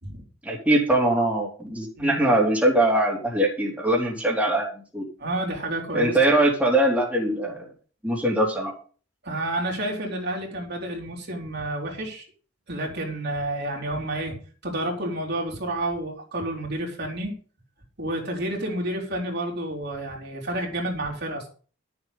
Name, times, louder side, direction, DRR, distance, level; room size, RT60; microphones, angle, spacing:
voice 1, 0.4-5.1 5.9-7.7 8.0-8.7, right 1 dB, 5° right, -3 dB, 3.3 m, -22 dB
voice 2, 5.2-6.2 9.2-12.3 12.7-14.4 14.6-17.3 18.0-21.5, right 1 dB, 55° right, 0 dB, 3.9 m, -30 dB
12.5 x 7.2 x 5.5 m, 0.38 s
head